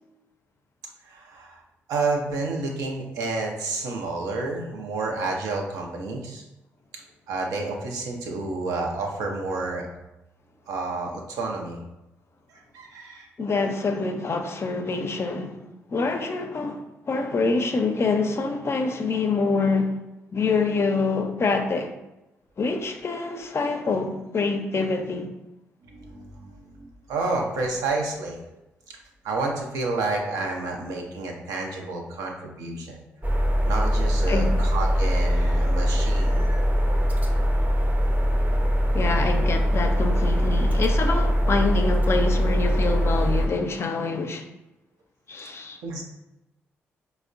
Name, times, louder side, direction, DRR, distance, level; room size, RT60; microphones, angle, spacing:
voice 1, 1.1-1.6 1.9-6.4 7.3-9.8 10.7-11.8 12.7-13.3 25.8-28.4 29.2-33.0 33.6-36.6 45.8-46.0, right 3 dB, 75° right, 0.6 m, -30 dB
voice 2, 13.4-15.6 15.9-19.9 20.3-21.9 22.6-25.3 34.3-34.6 38.9-44.4 45.3-45.8, left 3 dB, 45° left, 0.5 m, -26 dB
sound 1, 33.2-43.5, equal, 25° right, 0.6 m, -22 dB
4.2 x 2.1 x 2.4 m
hypercardioid pair, 45°, 6 cm